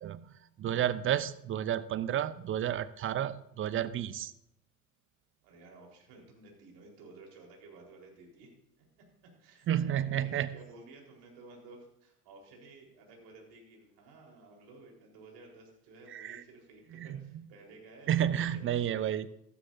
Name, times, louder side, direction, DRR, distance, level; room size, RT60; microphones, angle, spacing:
voice 1, 0.6-4.3 9.7-10.5 16.1-16.4 16.9-17.1 18.1-19.3, right 10 dB, 25° right, 16 dB, 0.5 m, -31 dB
voice 2, 5.4-8.8 9.2-19.1, right 3 dB, 55° right, 0 dB, 4.2 m, -54 dB
14.0 x 12.5 x 2.6 m, 0.76 s
hypercardioid pair, 85°, 47 cm